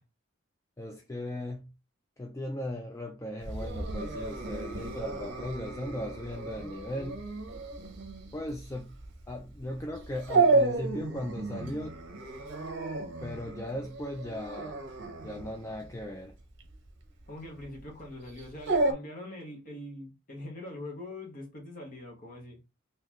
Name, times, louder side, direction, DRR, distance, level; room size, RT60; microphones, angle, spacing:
voice 1, 0.8-1.7 2.2-7.2 8.3-8.9 9.3-11.9 13.2-14.8 15.2-16.4, left 1 dB, 15° left, 0.3 m, -37 dB
Dog, 3.4-18.9, right 3 dB, 55° right, 0.8 m, -32 dB
voice 2, 17.3-22.6, left 1 dB, 40° left, 1.3 m, -43 dB
3.9 x 2.9 x 3.0 m
head